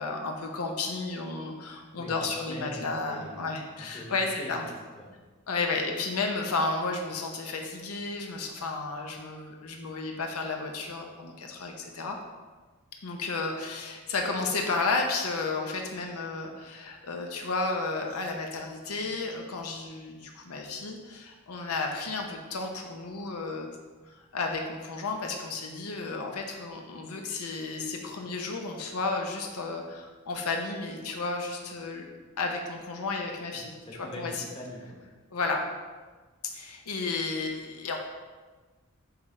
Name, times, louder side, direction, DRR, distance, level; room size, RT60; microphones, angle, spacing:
voice 1, 0.0-4.7 5.5-12.2 13.0-23.7 24.1-32.0 32.4-34.4 35.3-35.7 36.5-38.0, left 3 dB, 85° left, 2 dB, 0.7 m, -32 dB
voice 2, 2.0-3.5 3.8-5.1 33.5-35.0, equal, 25° left, -2 dB, 1.1 m, -43 dB
8.1 x 3.3 x 3.6 m, 1.3 s
head